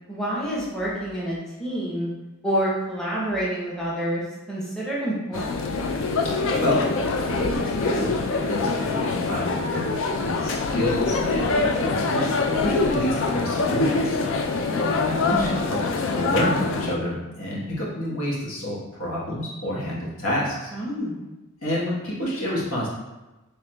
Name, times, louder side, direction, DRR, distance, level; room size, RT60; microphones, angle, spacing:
voice 1, 0.1-2.1 2.4-5.7 15.3-15.8 20.7-21.3, right 1 dB, 5° left, -7 dB, 0.7 m, -28 dB
sound 1, 5.3-16.9, left 3 dB, 60° left, 0.3 m, -24 dB
voice 2, 6.2-6.8 7.3-9.9 10.2-14.2 14.7-15.8 16.1-20.7 21.6-22.9, equal, 85° left, -6 dB, 1.2 m, -28 dB
4.6 x 3.3 x 2.2 m, 1.1 s
head